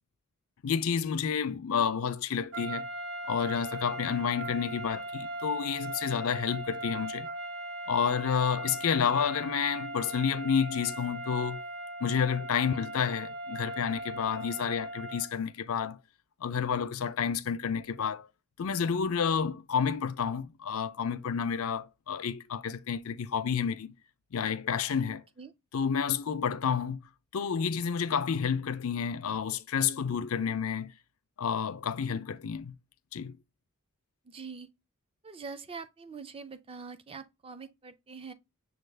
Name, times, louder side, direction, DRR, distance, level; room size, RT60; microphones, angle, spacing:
voice 1, 0.6-2.9 3.3-7.3 7.9-11.6 12.0-16.0 16.4-18.3 18.6-23.9 24.3-25.2 25.7-27.0 27.3-30.9 31.4-32.7 33.1-33.4, left 7 dB, 65° left, 0.5 m, -30 dB
sound 1, 2.5-15.4, right 1 dB, 80° right, 1.0 m, -39 dB
voice 2, 34.2-34.7 35.2-38.3, right 5 dB, 25° right, 0.4 m, -44 dB
6.4 x 2.3 x 3.3 m
head